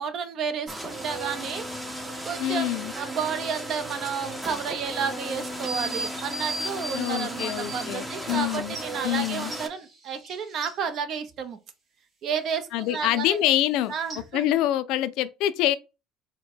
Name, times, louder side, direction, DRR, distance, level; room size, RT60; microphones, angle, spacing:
voice 1, 0.0-1.6 2.2-11.6 12.2-13.4 13.9-14.5, right 6 dB, 50° right, 0.7 m, -31 dB
sound 1, 0.7-9.7, right 1 dB, 10° right, 0.7 m, -36 dB
voice 2, 2.4-2.9 6.9-8.8 9.0-9.5 12.7-13.9 14.3-15.7, left 13 dB, 70° left, 0.3 m, -25 dB
sound 2, 5.7-7.9 8.7-8.9 9.5-10.7 14.1-14.2, right 2 dB, 30° right, 2.0 m, -35 dB
4.4 x 2.2 x 4.4 m
cardioid pair, 130°, 0 cm